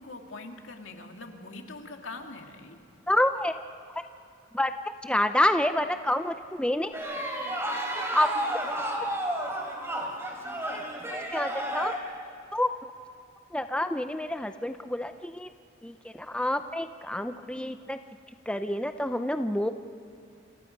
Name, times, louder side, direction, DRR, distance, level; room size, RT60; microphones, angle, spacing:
voice 1, 0.0-2.8, left 2 dB, 80° left, 3 dB, 2.5 m, -43 dB
voice 2, 3.1-3.5 4.5-4.7 5.0-6.9 8.1-8.3 9.0-9.1 11.3-11.9 12.5-12.7 13.5-15.5 15.8-18.0 18.5-19.7, left 1 dB, 5° left, 8 dB, 0.6 m, -27 dB
sound 1, 6.9-12.0, right 1 dB, 15° right, 3.5 m, -31 dB
28.5 x 28.0 x 5.3 m, 2.6 s
head